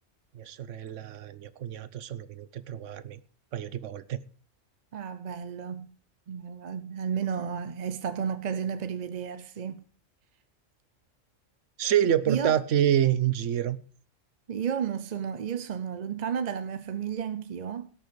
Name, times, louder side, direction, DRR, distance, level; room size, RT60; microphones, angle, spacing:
voice 1, 0.3-3.2 3.5-4.2 11.8-13.8, right 10 dB, 75° right, 1.1 m, -27 dB
voice 2, 4.9-6.0 6.3-9.8 12.3-12.6 14.5-17.9, right 7 dB, 45° right, 0.6 m, -32 dB
17.5 x 6.6 x 5.1 m
omnidirectional pair, 1.3 m